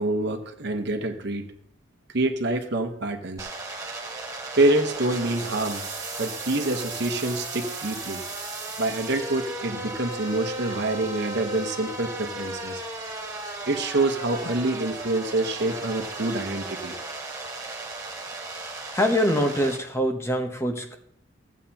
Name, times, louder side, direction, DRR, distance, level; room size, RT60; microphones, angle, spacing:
voice 1, 0.0-1.4 2.1-3.5 4.6-5.9 6.2-8.2 8.8-12.8 13.7-16.9, right 2 dB, 60° right, 5 dB, 1.1 m, -26 dB
sound 1, 3.4-19.8, right 2 dB, 15° right, 1.5 m, -35 dB
voice 2, 18.9-21.0, equal, 15° left, 4 dB, 0.9 m, -24 dB
14.5 x 8.3 x 2.9 m, 0.71 s
head